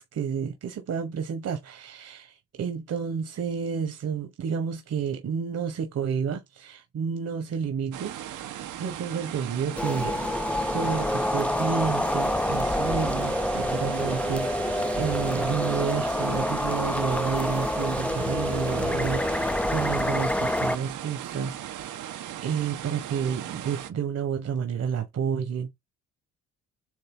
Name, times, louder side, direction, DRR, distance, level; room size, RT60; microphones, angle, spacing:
voice 1, 0.0-8.5 8.8-10.2 10.7-22.0 22.4-25.7, right 7 dB, 55° right, 1.4 m, -30 dB
sound 1, 7.9-23.9, right 11 dB, 80° right, 1.2 m, -38 dB
sound 2, 9.8-20.8, left 1 dB, 5° left, 0.5 m, -27 dB
7.8 x 3.2 x 3.9 m
cardioid pair, 90°, 30 cm